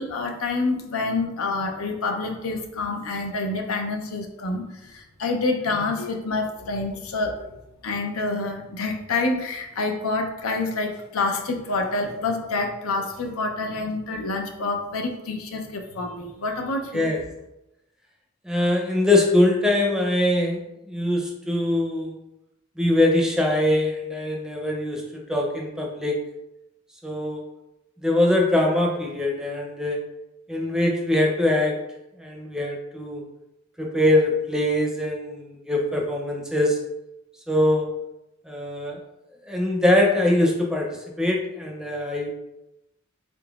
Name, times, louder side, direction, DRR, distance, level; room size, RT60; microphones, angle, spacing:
voice 1, 0.0-7.5 7.8-17.1, left 3 dB, 85° left, 3 dB, 0.5 m, -27 dB
voice 2, 18.5-20.6 20.9-22.2 22.8-26.2 27.0-27.4 28.0-30.0 30.5-31.7 32.2-33.2 33.8-36.8 37.5-37.9 38.5-39.0 39.5-40.9 41.2-42.3, left 1 dB, 5° right, -1 dB, 0.5 m, -22 dB
3.7 x 3.7 x 2.3 m, 0.91 s
head